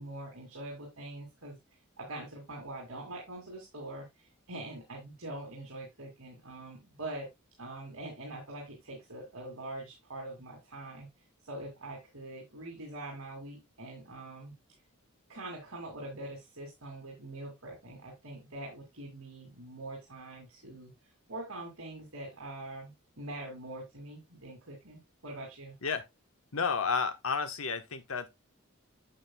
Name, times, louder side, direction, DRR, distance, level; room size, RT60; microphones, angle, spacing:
voice 1, 0.0-1.6 2.0-7.3 7.6-11.1 11.4-14.5 15.3-25.8, right 2 dB, 70° right, 2.7 m, -44 dB
voice 2, 26.5-28.3, left 5 dB, 70° left, 1.1 m, -31 dB
8.6 x 7.4 x 2.2 m
head